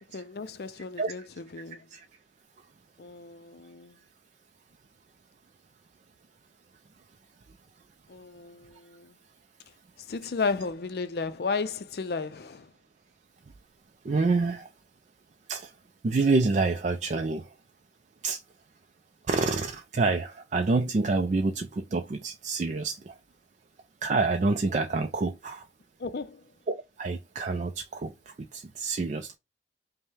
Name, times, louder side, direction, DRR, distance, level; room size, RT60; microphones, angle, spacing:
voice 1, 0.1-1.8 3.0-4.0 8.1-9.1 10.1-12.7 26.0-26.4, left 4 dB, 60° left, 0.4 m, -34 dB
voice 2, 14.0-14.7 15.5-15.7 16.0-17.5 18.2-18.4 19.3-23.2 24.0-25.7 26.7-29.4, right 3 dB, 40° right, 0.4 m, -27 dB
5.4 x 2.1 x 3.2 m
head